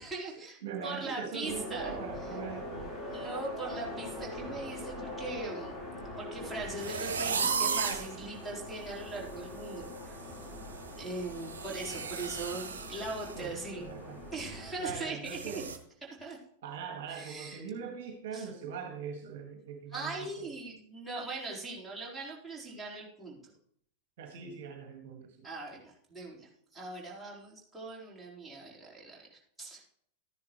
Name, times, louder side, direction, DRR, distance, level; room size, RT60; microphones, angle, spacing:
voice 1, 0.0-1.9 3.1-5.8 6.2-10.5 10.9-13.9 14.3-15.6 16.2-16.4 17.1-17.6 18.3-18.5 19.9-23.5 25.4-29.8, right 3 dB, 5° right, -4 dB, 4.0 m, -40 dB
voice 2, 0.6-2.9 13.4-14.2 14.8-15.7 16.6-20.3 24.2-25.5, right 6 dB, 55° right, 3 dB, 1.8 m, -41 dB
sound 1, 1.4-14.7, left 1 dB, 30° left, 4.0 m, -43 dB
sound 2, 6.8-8.1 8.7-8.8 9.2-9.4 9.7-13.4 13.7-13.9 14.3-14.4 15.2-15.8, right 6 dB, 70° right, 1.3 m, -35 dB
13.5 x 10.5 x 3.1 m, 0.65 s
figure-of-eight pair, 90°, 0 cm